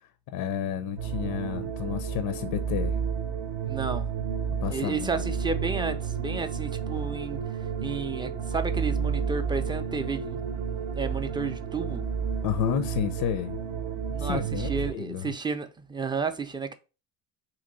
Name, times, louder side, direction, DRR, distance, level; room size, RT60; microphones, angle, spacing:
voice 1, 0.3-3.0 4.5-5.2 12.4-13.6 14.2-15.3, left 9 dB, 60° left, 0.5 m, -31 dB
sound 1, 1.0-14.9, right 6 dB, 55° right, 0.7 m, -31 dB
voice 2, 3.6-4.1 4.7-7.4 7.8-10.4 11.0-12.1 14.1-16.7, right 4 dB, 10° right, 0.4 m, -32 dB
2.9 x 2.9 x 3.9 m
supercardioid pair, 75°, 39 cm